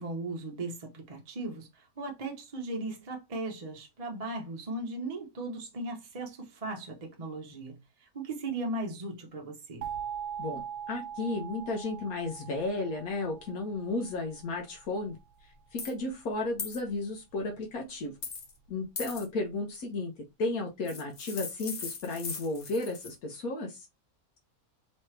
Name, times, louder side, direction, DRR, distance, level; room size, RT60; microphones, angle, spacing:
voice 1, 0.0-9.8, right 2 dB, 35° right, 0.7 m, -37 dB
sound 1, 9.8-14.6, right 8 dB, 90° right, 1.1 m, -41 dB
voice 2, 10.4-15.2 15.4-18.1 18.7-20.1 20.4-23.9, left 2 dB, 75° left, 1.3 m, -34 dB
sound 2, 15.8-15.9 16.6-16.8 18.2-18.5 19.0-19.3 20.9-23.1, left 5 dB, 45° left, 0.6 m, -39 dB
3.2 x 3.0 x 3.1 m
omnidirectional pair, 1.5 m